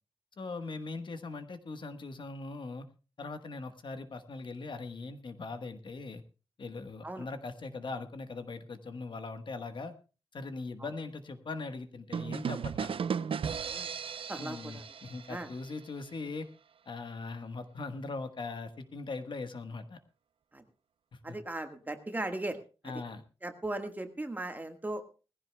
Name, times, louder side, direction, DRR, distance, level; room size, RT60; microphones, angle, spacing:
voice 1, 0.4-2.9 3.2-6.2 6.6-9.9 10.3-12.9 14.4-16.5 16.9-20.0 21.1-21.4 22.8-23.2, left 3 dB, 50° left, 9 dB, 1.2 m, -40 dB
sound 1, 12.1-15.9, right 7 dB, 60° right, 0.6 m, -36 dB
voice 2, 14.3-14.8 15.3-15.5 20.5-20.6 21.2-22.6 22.8-22.9 23.4-25.0, right 2 dB, 15° right, 7 dB, 1.5 m, -37 dB
20.5 x 15.5 x 2.2 m, 0.33 s
wide cardioid pair, 165°, 10 cm